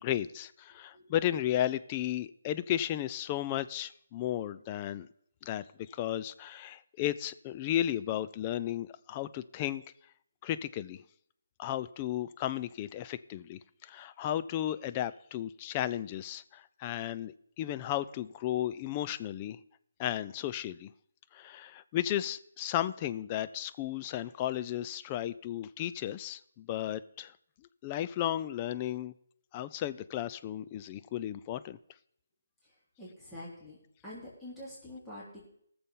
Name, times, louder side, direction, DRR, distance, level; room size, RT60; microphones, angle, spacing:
voice 1, 0.0-5.1 5.4-9.8 10.4-11.0 11.6-19.6 20.0-20.9 21.3-27.3 27.8-29.1 29.5-31.8, left 12 dB, 25° left, 13 dB, 0.4 m, -34 dB
voice 2, 32.6-33.8 34.0-35.4, left 1 dB, 5° left, -9 dB, 3.1 m, -46 dB
19.5 x 6.9 x 3.7 m, 0.68 s
figure-of-eight pair, 155°, 0 cm